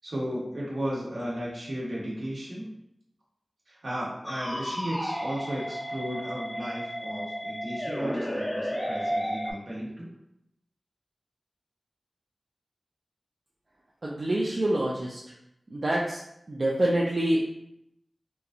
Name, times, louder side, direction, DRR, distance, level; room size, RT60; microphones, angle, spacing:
voice 1, 0.0-2.7 3.7-10.1, equal, 70° right, -5 dB, 1.0 m, -34 dB
sound 1, 4.2-9.5, equal, 20° left, 0.4 m, -32 dB
voice 2, 14.0-15.2 15.7-16.2 16.5-17.4, right 1 dB, 55° right, -4 dB, 0.4 m, -26 dB
3.0 x 2.5 x 2.4 m, 0.79 s
wide cardioid pair, 50°, 0 cm